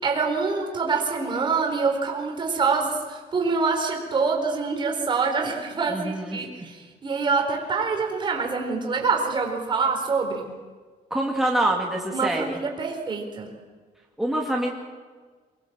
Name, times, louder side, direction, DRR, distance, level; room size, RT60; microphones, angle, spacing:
voice 1, 0.0-10.5 12.1-13.5, right 4 dB, 30° right, 2 dB, 4.3 m, -25 dB
voice 2, 5.9-6.5 11.1-12.6 14.2-14.7, right 1 dB, ahead, -1 dB, 2.3 m, -25 dB
25.0 x 21.5 x 7.4 m, 1.5 s
cardioid pair, 155°, 15 cm